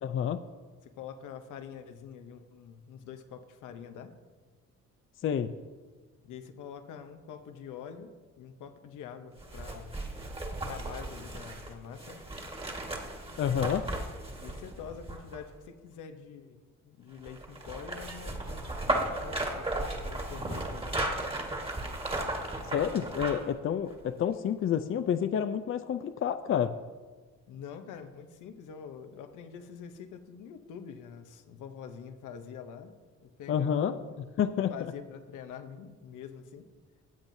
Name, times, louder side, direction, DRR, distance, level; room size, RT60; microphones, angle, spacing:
voice 1, 0.0-0.4 5.2-5.5 13.4-13.8 22.7-26.7 33.5-33.9 34.4-34.7, left 8 dB, 45° left, 11 dB, 0.5 m, -29 dB
voice 2, 0.8-4.1 6.2-10.0 10.6-12.2 14.3-21.3 27.5-33.0 33.2-34.1 34.7-36.7, left 7 dB, 85° left, 8 dB, 0.9 m, -46 dB
sound 1, 9.4-15.6 17.2-23.5 23.9-24.0, right 1 dB, 20° right, 1.6 m, -35 dB
16.5 x 7.4 x 2.7 m, 1.4 s
cardioid pair, 90°, 30 cm